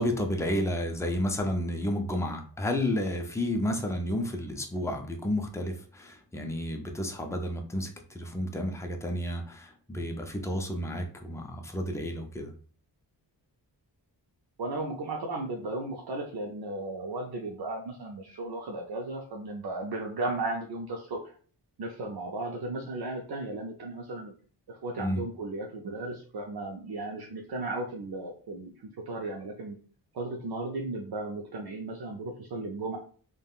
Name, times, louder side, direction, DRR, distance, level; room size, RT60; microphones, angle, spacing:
voice 1, 0.0-12.5 25.0-25.2, left 1 dB, 5° left, 0.4 m, -31 dB
voice 2, 14.6-21.3 21.8-24.3 24.7-28.7 29.1-29.8 30.1-33.0, right 2 dB, 65° right, 0.5 m, -35 dB
3.4 x 2.2 x 2.3 m
wide cardioid pair, 95°, 42 cm